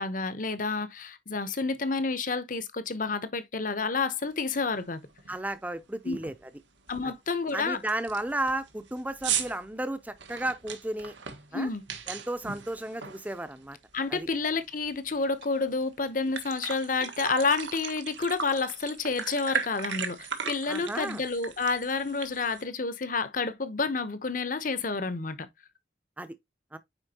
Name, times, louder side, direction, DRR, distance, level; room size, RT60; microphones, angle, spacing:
voice 1, 0.0-5.0 6.0-6.2 6.9-7.8 11.5-11.8 13.9-25.5, left 4 dB, 45° left, 0.8 m, -29 dB
sound 1, 4.5-4.6 5.0-5.3 5.6-5.7 6.1-6.5 6.9-7.0 7.5-7.6 7.9-13.8 14.2-15.5 15.8-15.9 16.2-22.6, right 7 dB, 85° right, 1.4 m, -37 dB
voice 2, 5.3-6.3 7.0-7.1 7.5-11.1 11.5-11.7 12.1-13.8 14.1-14.3 20.7-21.2 26.2-26.3 26.7-26.8, right 1 dB, 10° right, 0.6 m, -33 dB
9.1 x 4.3 x 2.9 m
head